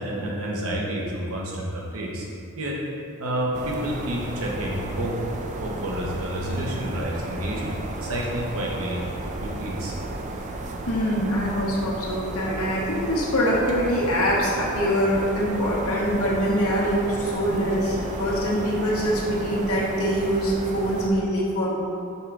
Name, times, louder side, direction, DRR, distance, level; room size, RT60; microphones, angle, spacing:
voice 1, 0.0-2.3 2.6-2.8 3.2-5.2 5.6-9.0 9.4-9.9, equal, 75° right, -3 dB, 1.0 m, -29 dB
sound 1, 3.5-21.1, right 2 dB, 35° right, 0.4 m, -33 dB
voice 2, 10.9-21.8, equal, 75° left, -4 dB, 1.1 m, -24 dB
5.5 x 3.7 x 4.7 m, 2.6 s
head